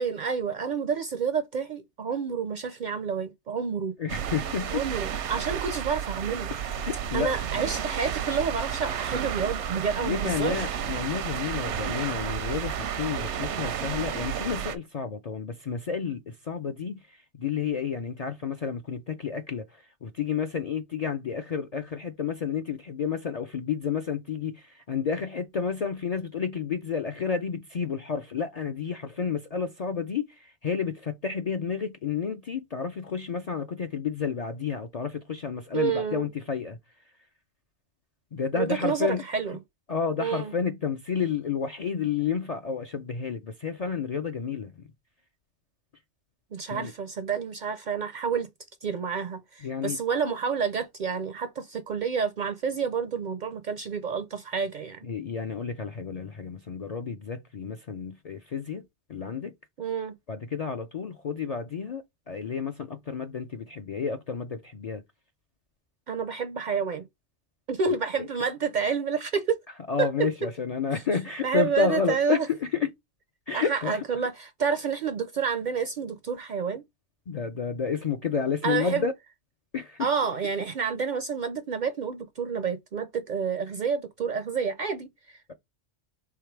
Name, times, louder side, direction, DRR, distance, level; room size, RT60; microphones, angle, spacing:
voice 1, 0.0-3.9 4.7-6.5 7.1-10.7 35.7-36.3 38.5-39.6 40.2-40.5 46.5-48.5 48.8-55.1 59.8-60.2 66.1-67.0 67.7-69.6 70.0-70.3 70.9-71.0 71.4-72.5 73.5-76.8 78.6-79.1 80.0-85.5, right 6 dB, 55° right, 0.5 m, -29 dB
voice 2, 4.0-4.8 6.5-7.3 10.0-36.8 38.3-39.2 39.9-44.8 46.7-46.9 49.6-50.0 55.0-58.8 59.1-59.5 60.3-65.0 68.2-68.3 69.9-72.9 73.5-74.0 77.3-79.1 79.7-80.1, left 6 dB, 55° left, 0.4 m, -31 dB
sound 1, 4.1-14.8, right 8 dB, 80° right, 0.9 m, -32 dB
3.6 x 3.2 x 4.5 m
omnidirectional pair, 1.2 m